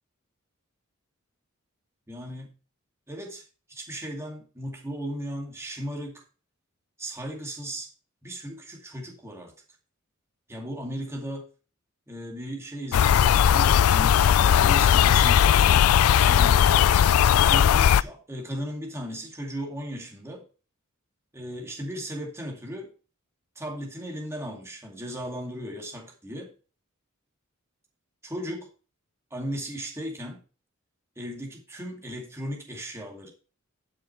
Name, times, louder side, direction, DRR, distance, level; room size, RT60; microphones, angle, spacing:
voice 1, 2.1-2.5 3.1-6.2 7.0-7.9 8.2-9.5 10.5-11.5 12.1-16.8 17.4-20.4 21.3-22.9 23.6-26.5 28.2-28.7 29.3-30.4 31.2-33.3, equal, 15° right, 2.3 m, -36 dB
sound 1, 12.9-18.0, left 9 dB, 85° left, 0.3 m, -18 dB
11.5 x 6.2 x 4.4 m
head